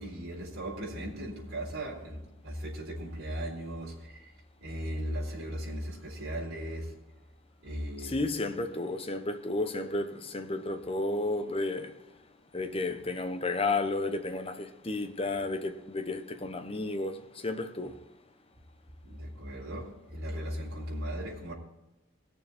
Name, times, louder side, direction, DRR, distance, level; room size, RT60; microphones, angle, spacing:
voice 1, 0.0-6.9 7.6-8.2 19.0-21.5, equal, 75° right, 4.0 m, -37 dB
voice 2, 8.0-11.9 12.5-18.0, left 2 dB, 25° left, 0.9 m, -32 dB
20.0 x 7.0 x 4.3 m
head